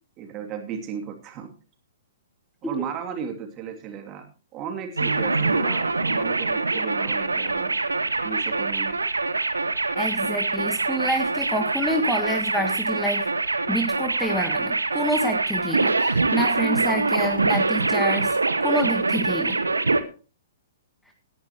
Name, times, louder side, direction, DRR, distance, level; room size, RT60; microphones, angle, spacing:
voice 1, 0.2-1.5 2.6-4.3 4.5-7.8 8.2-8.9, right 7 dB, 30° right, 4 dB, 2.8 m, -35 dB
sound 1, 5.0-20.0, right 3 dB, 85° right, 1.1 m, -24 dB
voice 2, 9.9-13.3 13.7-19.6, equal, 5° left, 4 dB, 1.6 m, -27 dB
18.0 x 10.5 x 3.0 m, 0.35 s
figure-of-eight pair, 120°, 0 cm